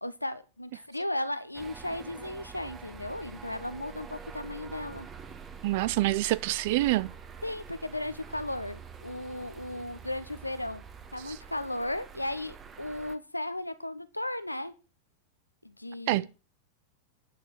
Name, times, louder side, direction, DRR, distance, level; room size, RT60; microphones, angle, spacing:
voice 1, 0.0-5.1 7.4-10.8 11.1-14.7 15.6-16.3, left 1 dB, 85° left, 1.0 m, -35 dB
sound 1, 1.5-13.2, right 6 dB, 25° right, 1.6 m, -46 dB
voice 2, 5.6-7.1 16.1-16.3, right 17 dB, 50° right, 0.7 m, -26 dB
11.0 x 6.6 x 7.5 m
figure-of-eight pair, 90°, 0 cm